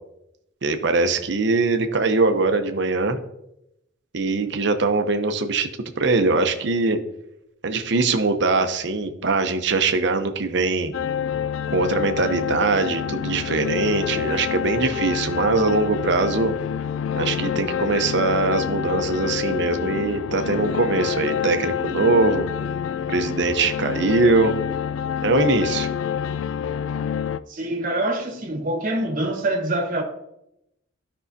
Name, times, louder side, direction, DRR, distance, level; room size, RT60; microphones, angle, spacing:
voice 1, 0.6-3.2 4.1-5.7 6.0-7.0 7.6-10.9 11.7-16.5 17.2-22.5 23.1-24.5 25.2-25.9, right 3 dB, 60° right, 0.7 m, -22 dB
sound 1, 10.9-27.4, left 8 dB, 85° left, 0.3 m, -27 dB
voice 2, 27.5-30.0, right 1 dB, 45° right, 1.2 m, -25 dB
12.5 x 5.4 x 2.7 m
head